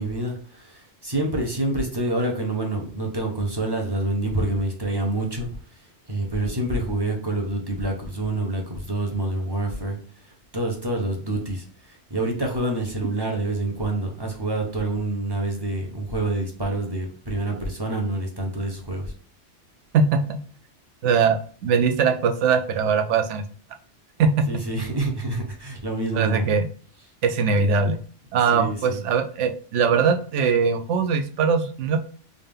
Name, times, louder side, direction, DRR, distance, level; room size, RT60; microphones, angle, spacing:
voice 1, 0.0-5.5 6.1-10.0 10.2-19.1 24.5-26.5 28.5-29.0, right 2 dB, 25° right, 0 dB, 0.7 m, -27 dB
voice 2, 19.9-20.4 21.0-23.4 24.2-24.5 26.1-26.6 27.2-28.0 28.3-32.0, right 5 dB, 75° right, 7 dB, 0.9 m, -21 dB
3.6 x 2.7 x 3.4 m, 0.43 s
omnidirectional pair, 1.3 m